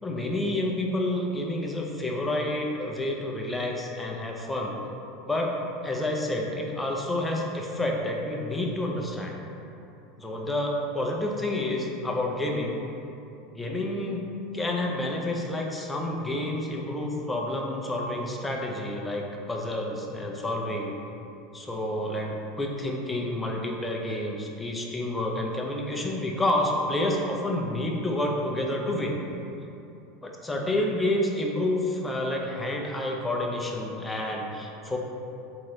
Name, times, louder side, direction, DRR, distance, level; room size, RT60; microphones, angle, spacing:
voice 1, 0.0-4.7 5.2-5.6 5.8-9.4 10.2-12.8 13.5-14.2 14.5-20.9 21.5-29.2 30.4-35.0, left 1 dB, 10° left, 0 dB, 0.5 m, -29 dB
3.7 x 3.0 x 4.4 m, 2.8 s
supercardioid pair, 135°, 0 cm